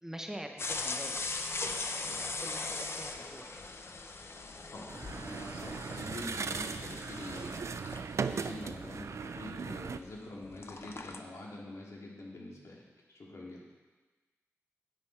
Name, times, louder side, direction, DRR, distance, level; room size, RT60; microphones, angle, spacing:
voice 1, 0.0-1.6 1.9-3.6, right 1 dB, 10° right, 4 dB, 0.8 m, -45 dB
sound 1, 0.6-10.2 10.4-11.2, left 3 dB, 55° left, 0.7 m, -40 dB
sound 2, 2.7-7.9, left 2 dB, 35° left, 3.3 m, -60 dB
voice 2, 4.7-7.6 8.2-13.6, left 2 dB, 80° left, -3 dB, 2.2 m, -45 dB
sound 3, 4.9-10.0, right 5 dB, 75° right, 0.4 m, -38 dB
10.0 x 8.9 x 4.5 m, 1.3 s
wide cardioid pair, 110°, 5 cm